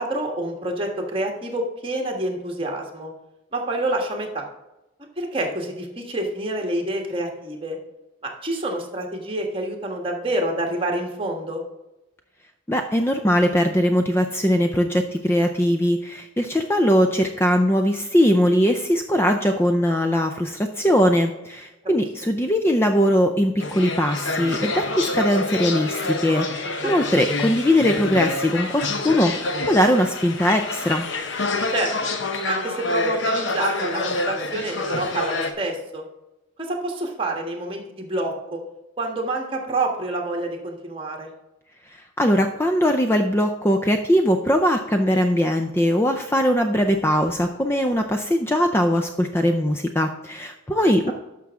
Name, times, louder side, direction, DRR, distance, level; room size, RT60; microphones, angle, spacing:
voice 1, 0.0-3.1 3.5-4.5 5.2-7.8 8.2-11.6 22.0-22.1 26.8-27.3 31.7-31.9 32.5-36.0 36.6-38.6 39.0-41.3, right 1 dB, 25° right, 1 dB, 1.5 m, -27 dB
voice 2, 12.7-31.1 42.2-51.1, equal, 10° left, 5 dB, 0.4 m, -20 dB
sound 1, 23.6-35.5, left 2 dB, 65° left, 0.9 m, -27 dB
12.0 x 6.0 x 3.6 m, 0.96 s
head